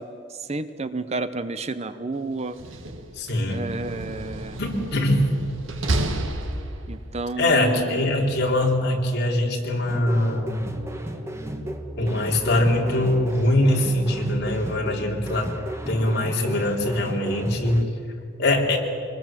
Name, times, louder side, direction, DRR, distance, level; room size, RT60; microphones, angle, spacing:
voice 1, 0.0-2.6 3.5-4.6 6.9-8.1, right 3 dB, 35° right, 12 dB, 0.7 m, -31 dB
Slam, 2.4-7.1, right 1 dB, 80° right, 1.7 m, -31 dB
voice 2, 3.2-3.7 4.6-5.2 7.4-10.7 12.0-15.5 15.9-17.9 18.4-18.8, left 1 dB, 55° left, 0 dB, 3.5 m, -22 dB
sound 1, 9.9-17.8, right 1 dB, 15° right, 1.4 m, -34 dB
25.0 x 20.5 x 7.5 m, 2.4 s
head